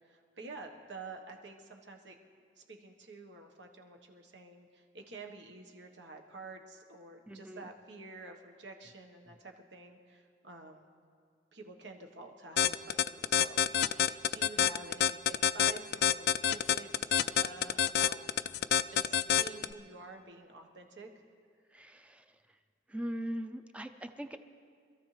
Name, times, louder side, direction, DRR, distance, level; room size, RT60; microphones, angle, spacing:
voice 1, 0.0-2.2 2.6-10.8 11.5-17.2 17.4-18.2 18.9-21.2, right 3 dB, 75° right, 3 dB, 1.4 m, -49 dB
voice 2, 7.3-7.6 21.7-22.2 22.9-24.4, equal, 5° right, 7 dB, 0.5 m, -40 dB
sound 1, 12.6-19.7, left 9 dB, 55° left, 0.3 m, -26 dB
25.5 x 14.0 x 3.3 m, 2.2 s
head